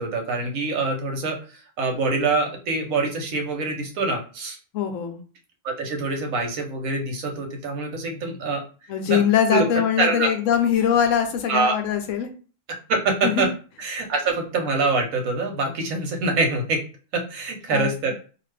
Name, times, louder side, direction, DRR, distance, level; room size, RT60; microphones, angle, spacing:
voice 1, 0.0-1.4 1.8-4.6 5.6-8.6 9.1-9.2 9.5-9.7 10.0-10.3 11.5-11.8 12.9-13.5 13.8-16.8 17.1-18.1, right 3 dB, 85° right, 3 dB, 1.2 m, -25 dB
voice 2, 4.7-5.2 8.9-12.3 13.2-13.5 17.7-18.1, left 8 dB, 75° left, 6 dB, 0.9 m, -22 dB
2.5 x 2.4 x 3.2 m, 0.37 s
omnidirectional pair, 1.4 m